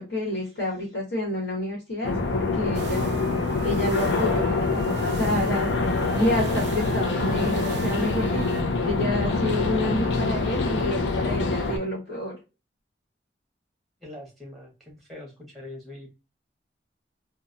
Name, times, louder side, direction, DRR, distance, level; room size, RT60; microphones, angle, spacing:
voice 1, 0.0-3.2 3.6-5.7 6.1-12.3, left 1 dB, 65° left, -6 dB, 1.5 m, -29 dB
sound 1, 2.0-11.8, left 3 dB, 85° left, 0.6 m, -25 dB
sound 2, 2.7-8.6, right 4 dB, 65° right, 0.4 m, -38 dB
voice 2, 14.0-16.1, left 1 dB, ahead, -1 dB, 1.0 m, -43 dB
2.9 x 2.3 x 2.4 m, 0.28 s
head